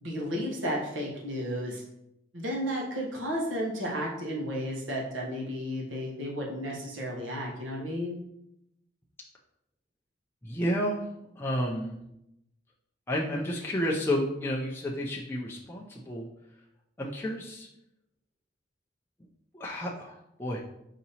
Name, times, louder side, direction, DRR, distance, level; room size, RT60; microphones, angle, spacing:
voice 1, 0.0-1.8 2.3-8.2, equal, 85° right, -2 dB, 1.1 m, -33 dB
voice 2, 10.4-11.1 11.4-12.0 13.1-16.3 17.0-17.7 19.5-20.6, equal, 10° left, -3 dB, 0.4 m, -31 dB
5.0 x 2.8 x 2.8 m, 0.82 s
head